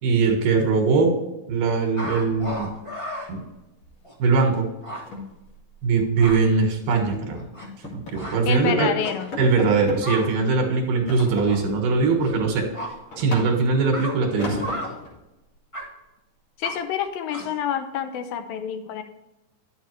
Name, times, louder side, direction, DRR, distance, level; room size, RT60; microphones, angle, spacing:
voice 1, 0.0-1.1 1.5-2.7 3.3-3.4 4.2-4.7 5.8-7.4 7.9-8.9 9.4-12.7 13.2-14.7, right 4 dB, 70° right, 2 dB, 3.0 m, -21 dB
sound 1, 1.9-3.3 4.0-4.1 4.5-4.6 4.8-5.0 5.9-6.4 7.0-7.9 8.1-8.3 9.0-9.3 10.0-10.3 11.3-11.6 12.2-12.3 12.7-12.9 13.3-13.4 13.9-14.1 14.6-14.9 15.7-15.8 16.6-16.7 17.3-17.6, equal, 20° left, 0.8 m, -33 dB
sound 2, 3.2-3.5 3.8-4.0 4.3-4.4 4.8-6.4 6.9-7.2 7.6-8.5 8.9-9.0 9.3-10.0 11.1-11.8 12.2-13.8 14.4-15.1, left 2 dB, 50° left, 3.2 m, -36 dB
voice 2, 8.5-9.3 16.6-19.0, left 8 dB, 85° left, 8 dB, 2.6 m, -28 dB
10.5 x 7.2 x 3.2 m, 0.98 s
omnidirectional pair, 4.1 m